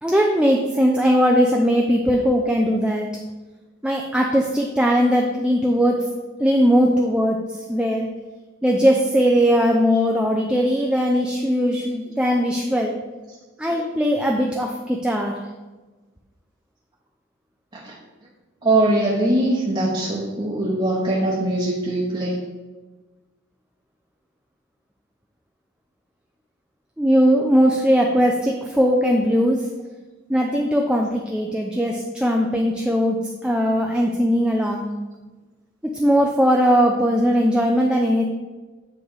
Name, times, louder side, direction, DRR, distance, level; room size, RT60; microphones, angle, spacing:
voice 1, 0.0-3.1 3.8-6.1 6.4-8.1 8.6-13.0 13.6-15.3 27.0-29.7 30.3-34.9 35.8-38.2, equal, 5° right, 0 dB, 0.4 m, -19 dB
voice 2, 18.6-22.4, right 1 dB, 25° right, -4 dB, 0.9 m, -21 dB
9.5 x 3.2 x 4.7 m, 1.2 s
head